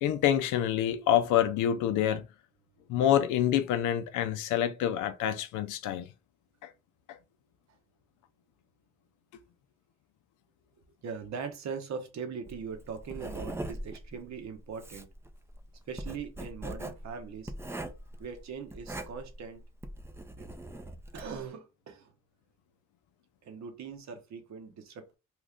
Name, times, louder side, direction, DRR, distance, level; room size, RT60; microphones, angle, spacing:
voice 1, 0.0-2.2 2.9-6.1, left 10 dB, 85° left, 0.5 m, -27 dB
voice 2, 11.0-15.1 15.9-17.5 18.2-19.6 20.4-20.5 21.1-22.1 23.4-25.2, right 6 dB, 65° right, 1.0 m, -41 dB
Writing, 12.5-21.4, right 1 dB, 10° right, 0.4 m, -41 dB
3.0 x 2.5 x 3.5 m
cardioid pair, 90°, 30 cm